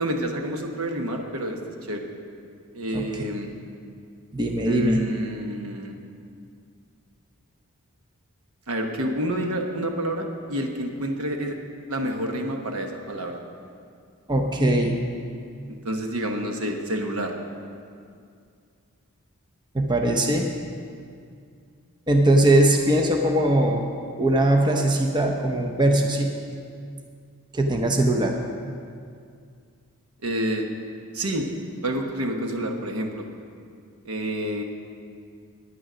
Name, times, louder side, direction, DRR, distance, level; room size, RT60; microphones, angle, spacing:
voice 1, 0.0-2.1 2.7-3.5 4.6-6.0 8.7-11.6 11.9-13.4 15.7-17.3 30.2-30.7 31.1-31.5 31.8-33.3 34.0-34.6, equal, 70° right, 3 dB, 1.1 m, -28 dB
voice 2, 4.3-5.0 14.3-15.0 19.7-20.5 22.1-23.8 24.2-26.4 27.5-28.4, right 1 dB, 20° right, 2 dB, 0.7 m, -20 dB
9.8 x 9.1 x 6.2 m, 2.3 s
head